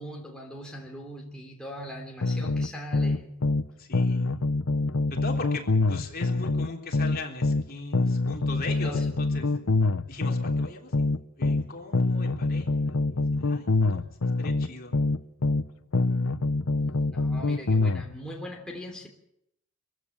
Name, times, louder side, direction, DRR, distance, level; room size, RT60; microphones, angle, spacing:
voice 1, 0.0-3.5 8.7-9.1 17.1-19.1, equal, 5° left, -1 dB, 3.2 m, -40 dB
sound 1, 2.2-3.7 3.9-7.7 7.9-11.7 11.9-15.7 15.9-18.0, left 3 dB, 70° left, 0.9 m, -25 dB
voice 2, 3.8-4.4 5.1-9.5 10.1-14.9, left 3 dB, 45° left, 1 dB, 3.6 m, -40 dB
24.0 x 15.5 x 8.6 m, 0.80 s
head